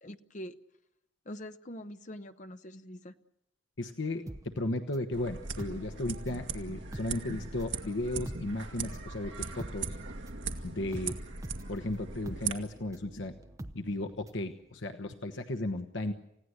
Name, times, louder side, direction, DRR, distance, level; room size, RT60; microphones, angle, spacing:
voice 1, 0.0-0.5 1.3-3.1, equal, 40° left, 9 dB, 1.0 m, -44 dB
voice 2, 3.8-10.0 10.6-11.2 11.7-13.3 13.7-16.1, left 1 dB, 65° left, 5 dB, 1.2 m, -35 dB
sound 1, 4.3-6.5 6.8-14.5 14.8-14.9, right 1 dB, 15° right, 0.8 m, -46 dB
sound 2, 5.1-12.5, right 5 dB, 70° right, 1.9 m, -39 dB
29.0 x 16.5 x 8.1 m, 0.86 s
head